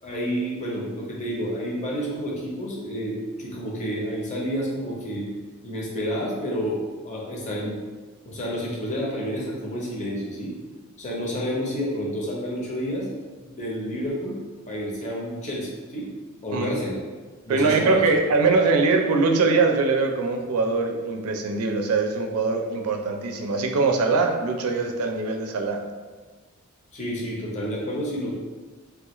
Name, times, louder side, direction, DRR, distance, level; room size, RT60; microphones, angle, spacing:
voice 1, 0.0-5.3 5.6-7.8 8.2-10.5 11.0-13.1 13.4-14.4 14.7-16.1 16.4-17.0 17.5-18.0 18.4-18.5 26.9-28.3, equal, 35° left, -4 dB, 0.7 m, -29 dB
voice 2, 17.5-25.8, right 3 dB, 80° right, 4 dB, 0.4 m, -22 dB
3.3 x 2.3 x 3.0 m, 1.3 s
head